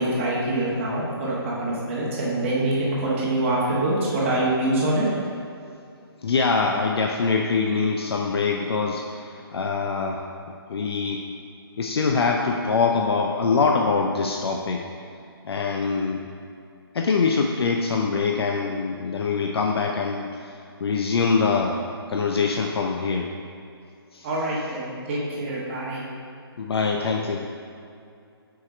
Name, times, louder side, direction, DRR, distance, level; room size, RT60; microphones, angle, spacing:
voice 1, 0.0-5.0 24.2-26.1, right 1 dB, 30° right, -6 dB, 1.2 m, -25 dB
voice 2, 6.2-10.2 10.7-11.3 11.8-14.8 15.5-16.2 16.9-20.3 20.8-21.8 22.1-23.3 24.1-24.3 26.6-27.5, left 4 dB, 70° left, 1 dB, 0.5 m, -24 dB
4.7 x 4.3 x 4.9 m, 2.5 s
hypercardioid pair, 160°, 13 cm